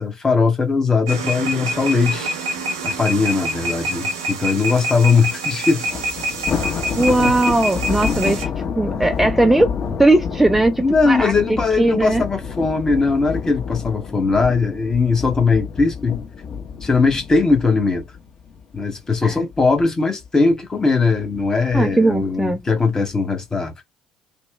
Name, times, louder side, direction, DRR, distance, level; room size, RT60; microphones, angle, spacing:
voice 1, 0.0-2.4 2.8-6.0 10.8-16.1 16.8-18.0 18.7-23.7, left 4 dB, 25° left, 0.9 m, -19 dB
sound 1, 1.1-8.5, right 1 dB, 75° right, 0.6 m, -26 dB
Thunder, 5.9-19.2 19.5-19.8 20.2-20.3 21.2-21.8, left 6 dB, 45° left, 1.2 m, -28 dB
voice 2, 7.0-8.5 8.8-9.7 10.0-11.3 11.8-12.2 19.2-19.4 21.7-22.6, right 2 dB, 10° right, 0.3 m, -18 dB
2.9 x 2.0 x 2.2 m
figure-of-eight pair, 55°, 3 cm